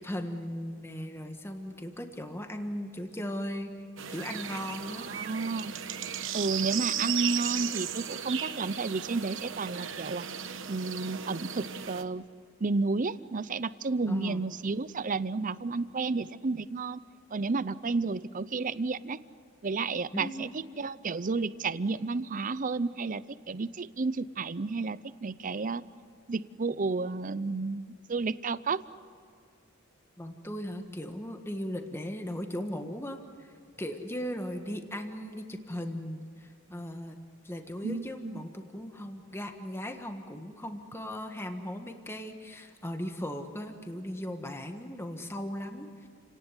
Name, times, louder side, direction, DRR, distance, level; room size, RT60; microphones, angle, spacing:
voice 1, 0.0-3.7 4.1-5.1 14.1-14.4 20.1-20.6 30.2-33.5 33.8-37.2 37.4-46.1, equal, 10° left, 5 dB, 1.5 m, -37 dB
sound 1, 4.0-12.0, right 8 dB, 65° right, 1.2 m, -35 dB
voice 2, 5.0-5.7 6.3-10.2 10.7-12.2 12.6-17.0 17.3-19.2 19.6-25.8 26.3-28.8 37.8-38.4, right 3 dB, 40° right, 16 dB, 0.6 m, -31 dB
29.5 x 18.5 x 9.9 m, 2.2 s
head